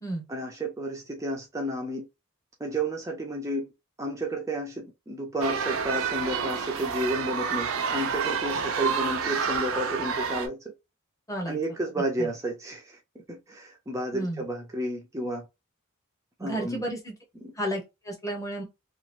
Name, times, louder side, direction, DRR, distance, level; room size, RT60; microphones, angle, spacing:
voice 1, 0.3-2.0 2.6-3.7 4.0-10.7 11.5-13.0 13.3-15.5 16.4-16.8, right 1 dB, 15° right, 0.5 m, -31 dB
sound 1, 5.4-10.5, right 6 dB, 65° right, 0.5 m, -29 dB
voice 2, 11.3-11.6 12.2-12.3 14.1-14.4 16.4-17.1 17.5-18.6, right 1 dB, 15° left, 1.0 m, -32 dB
2.9 x 2.4 x 2.5 m
head